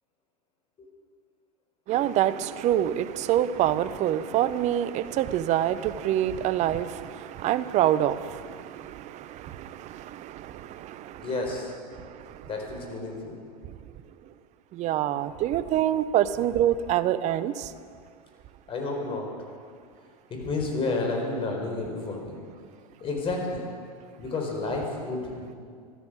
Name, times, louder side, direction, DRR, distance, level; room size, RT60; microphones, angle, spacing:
voice 1, 1.9-11.3 14.7-17.7, right 11 dB, 40° right, 15 dB, 0.7 m, -26 dB
voice 2, 11.2-11.7 12.4-13.4 18.7-19.3 20.3-22.4 23.0-23.7 24.2-25.6, left 3 dB, 30° left, 1 dB, 4.3 m, -31 dB
14.5 x 12.5 x 6.4 m, 2.1 s
hypercardioid pair, 100°, 19 cm